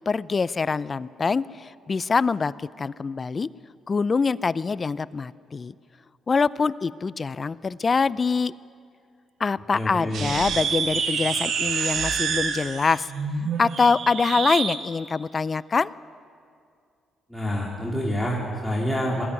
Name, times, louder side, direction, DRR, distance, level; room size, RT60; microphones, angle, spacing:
voice 1, 0.1-3.5 3.9-5.7 6.3-8.5 9.4-13.1 13.6-15.9, left 4 dB, 35° left, 18 dB, 0.4 m, -24 dB
voice 2, 9.7-10.3 17.3-19.2, equal, ahead, -4 dB, 3.0 m, -27 dB
sound 1, 10.1-14.8, right 6 dB, 70° right, 1.6 m, -27 dB
20.5 x 13.5 x 9.5 m, 2.4 s
cardioid pair, 90°, 0 cm